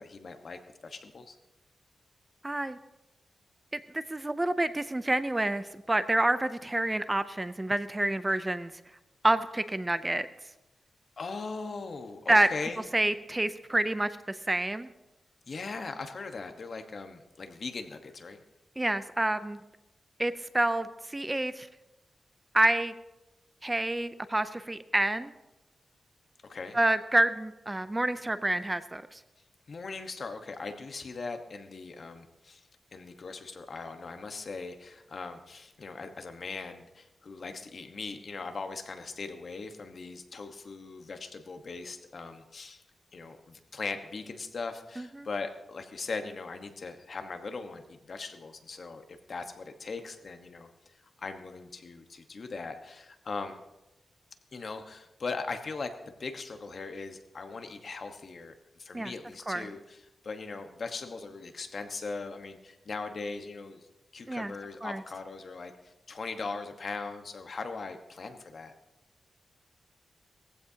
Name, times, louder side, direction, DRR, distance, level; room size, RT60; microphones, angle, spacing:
voice 1, 0.0-1.4 11.2-12.9 15.5-18.4 26.5-26.8 29.7-42.8 43.1-53.6 54.5-63.9 64.1-68.7, left 4 dB, 55° left, 6 dB, 1.2 m, -40 dB
voice 2, 2.4-2.8 3.7-8.7 9.2-10.3 12.3-12.5 12.9-14.9 18.8-19.6 20.2-21.7 22.5-22.9 23.6-25.3 26.7-29.2 45.0-45.1 58.9-59.1 59.5-59.7 64.3-64.5 64.8-65.0, right 1 dB, 15° right, 12 dB, 0.5 m, -28 dB
19.5 x 15.0 x 2.8 m, 0.97 s
wide cardioid pair, 110°, 0 cm